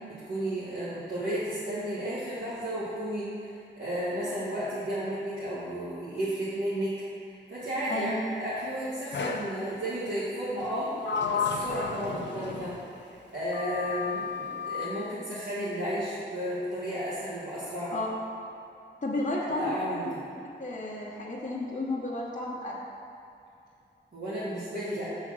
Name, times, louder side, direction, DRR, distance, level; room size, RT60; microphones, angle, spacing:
voice 1, 0.2-7.0 7.2-17.9 19.4-20.2 24.1-25.1, equal, 70° right, -12 dB, 1.7 m, -33 dB
voice 2, 7.9-8.2 17.9-18.1 19.0-19.9 20.6-22.7, left 2 dB, 40° left, -5 dB, 1.1 m, -32 dB
Sliding door, 9.1-9.6 10.6-13.0 13.5-14.9, left 5 dB, 75° left, 0.5 m, -33 dB
6.3 x 4.0 x 6.2 m, 2.6 s
cardioid pair, 45°, 19 cm